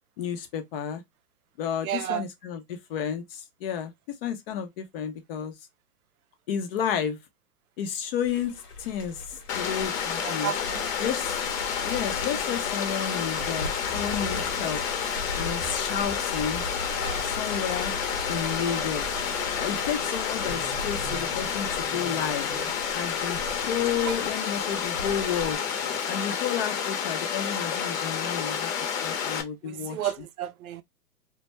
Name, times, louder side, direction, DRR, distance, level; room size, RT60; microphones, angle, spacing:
voice 1, 0.2-1.0 1.6-3.9 4.2-5.5 6.5-7.2 7.8-10.5 11.0-11.3 11.8-14.8 15.3-16.6 17.2-17.9 18.3-19.2 19.6-22.5 22.9-23.4 23.7-25.6 26.1-28.7 29.0-30.0, left 8 dB, 40° left, 0.5 m, -31 dB
voice 2, 1.8-2.2 10.2-10.9 24.0-24.1 29.6-30.8, right 11 dB, 70° right, 0.5 m, -32 dB
sound 1, 8.2-25.6, left 1 dB, 85° left, 1.0 m, -40 dB
Water, 9.5-29.4, left 7 dB, 60° left, 0.8 m, -30 dB
Growling, 13.8-22.9 24.2-24.4 24.8-26.0, right 4 dB, 15° right, 0.6 m, -45 dB
2.2 x 2.1 x 2.8 m
hypercardioid pair, 125°, 46 cm